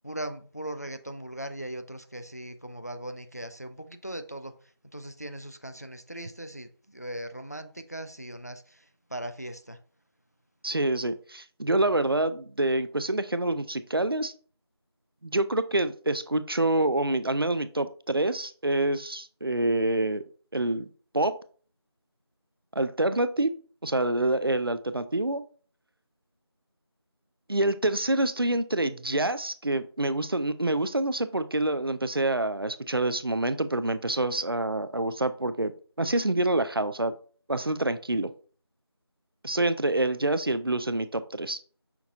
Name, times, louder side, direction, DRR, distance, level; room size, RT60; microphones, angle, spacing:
voice 1, 0.0-9.8, right 1 dB, 35° left, 0.4 m, -39 dB
voice 2, 10.6-14.3 15.2-20.2 20.5-20.9 21.1-21.3 22.8-23.5 23.8-25.4 27.5-35.7 36.0-37.1 37.5-38.3 39.4-41.6, right 2 dB, 55° right, 0.4 m, -27 dB
5.8 x 2.3 x 3.8 m
figure-of-eight pair, 175°, 14 cm